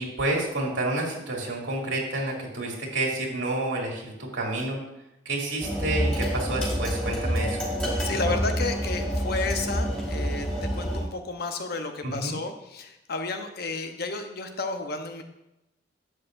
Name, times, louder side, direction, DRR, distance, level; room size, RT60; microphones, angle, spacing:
voice 1, 0.0-4.8 5.3-7.6 8.2-8.4 12.0-12.4, right 2 dB, 85° right, -1 dB, 2.5 m, -29 dB
sound 1, 5.6-11.0, equal, 5° left, 2.6 m, -28 dB
voice 2, 8.0-15.2, left 3 dB, 55° left, 6 dB, 0.9 m, -32 dB
11.5 x 8.1 x 2.6 m, 0.92 s
head